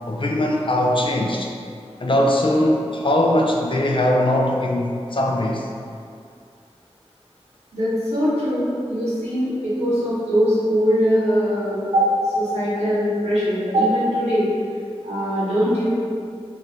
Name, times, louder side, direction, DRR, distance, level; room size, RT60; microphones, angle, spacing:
voice 1, 0.1-1.5 2.0-5.7, left 1 dB, 50° left, 0 dB, 0.4 m, -20 dB
voice 2, 7.7-14.5 15.0-15.9, equal, 75° right, -11 dB, 1.3 m, -21 dB
3.1 x 2.6 x 2.8 m, 2.3 s
wide cardioid pair, 50°, 11 cm